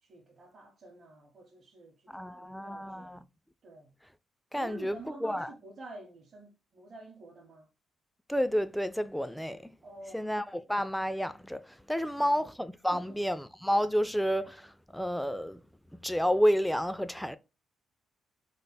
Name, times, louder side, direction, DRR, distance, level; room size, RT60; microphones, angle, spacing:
voice 1, 0.0-3.3 3.6-3.9 4.5-7.7 9.8-10.2 12.0-12.3 12.9-13.1, right 2 dB, 50° right, 0.9 m, -49 dB
voice 2, 2.1-3.2 4.5-5.5 8.3-9.8 10.1-15.6 15.9-17.4, equal, ahead, 0.3 m, -30 dB
3.3 x 2.0 x 4.1 m
cardioid pair, 90°, 0 cm